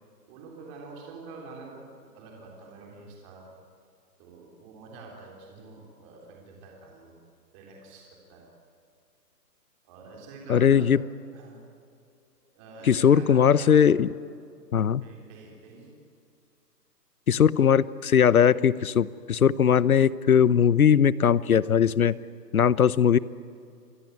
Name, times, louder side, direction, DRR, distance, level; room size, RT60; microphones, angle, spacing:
voice 1, 0.3-1.8 2.1-3.5 4.2-7.1 7.5-8.4 9.8-10.9 11.3-11.6 12.5-13.8 15.0-15.9, right 3 dB, 15° right, -1 dB, 3.5 m, -46 dB
voice 2, 10.5-11.0 12.9-14.1 14.7-15.0 17.3-22.2 22.5-23.2, left 8 dB, 60° left, 19 dB, 0.9 m, -20 dB
27.5 x 23.0 x 9.4 m, 2.4 s
hypercardioid pair, 165°, 50 cm